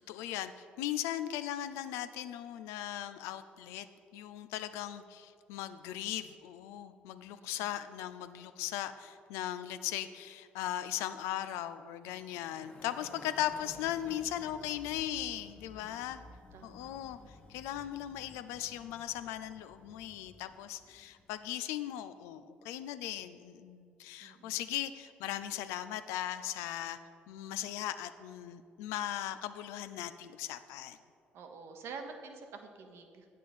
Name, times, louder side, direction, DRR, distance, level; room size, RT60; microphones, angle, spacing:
voice 1, 0.0-3.9 4.1-16.2 16.6-27.0 27.3-31.0, left 12 dB, 75° left, 12 dB, 0.4 m, -38 dB
sound 1, 12.0-21.3, left 2 dB, 25° left, 1.4 m, -55 dB
voice 2, 16.5-16.9 24.2-24.6 31.3-33.3, right 4 dB, 65° right, 5 dB, 1.0 m, -48 dB
8.6 x 6.6 x 5.3 m, 2.3 s
hypercardioid pair, 50°, 5 cm